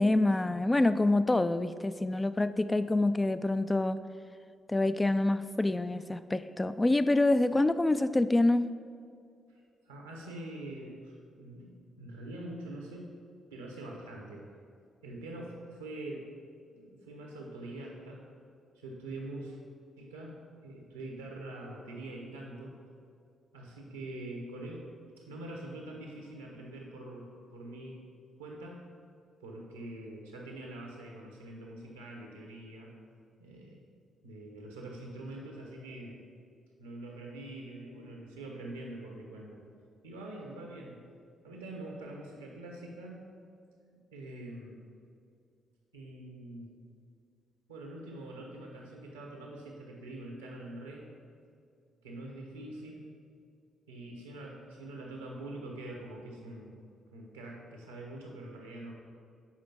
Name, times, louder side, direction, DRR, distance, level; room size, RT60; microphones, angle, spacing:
voice 1, 0.0-4.0 4.7-8.7, left 2 dB, 20° left, 12 dB, 0.3 m, -26 dB
voice 2, 9.5-13.1 13.5-14.5 15.0-16.3 16.7-18.3 18.7-19.6 20.0-22.7 23.5-24.9 25.2-28.0 28.4-28.8 29.4-32.9 33.4-33.8 34.2-36.2 36.8-39.6 40.0-41.0 41.4-43.3 43.9-44.8 45.9-46.8 47.7-51.1 52.0-53.1 53.9-56.8 57.1-58.9, right 1 dB, 85° right, -1 dB, 1.0 m, -44 dB
7.3 x 5.0 x 4.5 m, 2.3 s
figure-of-eight pair, 40°, 0 cm